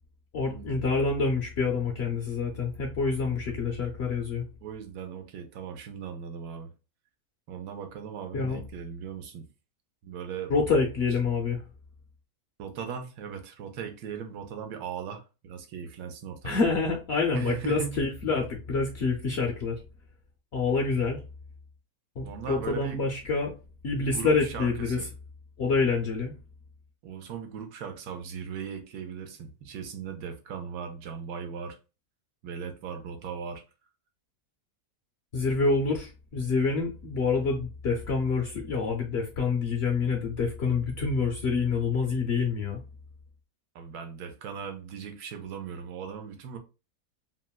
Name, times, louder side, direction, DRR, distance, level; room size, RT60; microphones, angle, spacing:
voice 1, 0.3-4.4 8.3-8.6 10.5-11.6 16.4-19.8 20.5-21.2 22.2-23.5 23.8-25.0 25.6-26.3 35.3-42.8, left 4 dB, 65° left, 0.6 m, -27 dB
voice 2, 4.6-6.7 7.5-9.5 10.0-10.7 12.6-16.6 17.3-18.0 22.2-23.1 24.0-25.1 27.0-31.8 32.4-33.6 43.7-46.6, right 7 dB, 90° right, 1.2 m, -38 dB
3.6 x 2.1 x 2.2 m
omnidirectional pair, 1.6 m